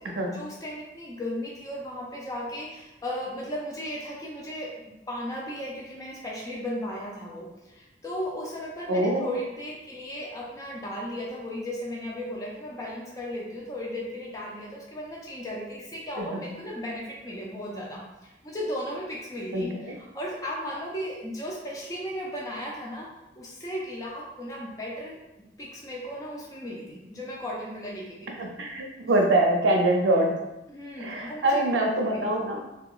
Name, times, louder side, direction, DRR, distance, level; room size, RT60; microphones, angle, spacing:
voice 1, 0.0-4.7 5.1-23.1 23.4-25.2 25.6-28.5 30.7-32.5, equal, 20° left, -3 dB, 0.4 m, -36 dB
voice 2, 8.9-9.2 16.2-16.4 19.5-19.9 28.4-30.3 31.0-32.6, right 1 dB, 85° right, 1 dB, 0.5 m, -24 dB
2.8 x 2.2 x 2.3 m, 0.99 s
head